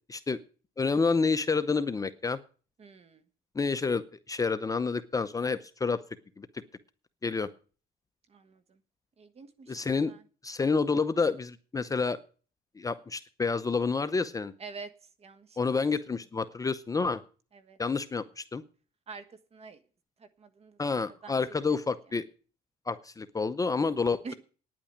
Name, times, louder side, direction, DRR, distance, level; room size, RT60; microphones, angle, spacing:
voice 1, 0.8-2.4 3.5-6.0 6.4-6.5 7.2-7.5 9.7-10.1 10.4-12.2 12.8-14.5 15.6-17.2 17.8-18.6 20.8-22.2 22.9-24.2, left 4 dB, 20° left, 12 dB, 0.7 m, -29 dB
voice 2, 2.8-3.2 8.3-8.8 9.2-10.2 14.6-14.9 15.2-15.6 17.5-17.8 19.1-19.8 20.2-21.4 21.7-21.8 24.2-24.3, right 4 dB, 35° right, 12 dB, 1.4 m, -47 dB
9.8 x 8.7 x 8.7 m, 0.39 s
cardioid pair, 110°, 17 cm